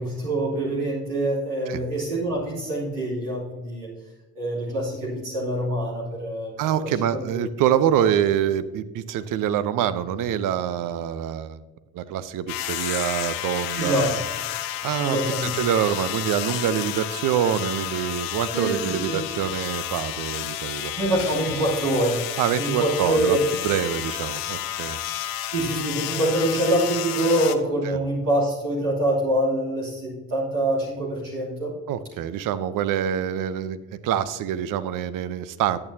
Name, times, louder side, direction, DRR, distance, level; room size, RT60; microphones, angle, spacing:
voice 1, 0.0-3.9 4.3-6.6 13.7-14.2 15.0-15.6 18.5-19.2 21.0-23.4 25.5-31.7, right 1 dB, 85° right, -6 dB, 2.9 m, -25 dB
voice 2, 6.6-11.6 11.9-14.1 14.8-20.9 22.4-23.4 23.6-25.0 27.8-28.0 31.9-35.8, right 10 dB, 70° right, 14 dB, 0.6 m, -25 dB
sound 1, 12.5-27.6, left 13 dB, 75° left, 0.7 m, -31 dB
10.5 x 8.8 x 2.8 m, 1.1 s
hypercardioid pair, 50°, 34 cm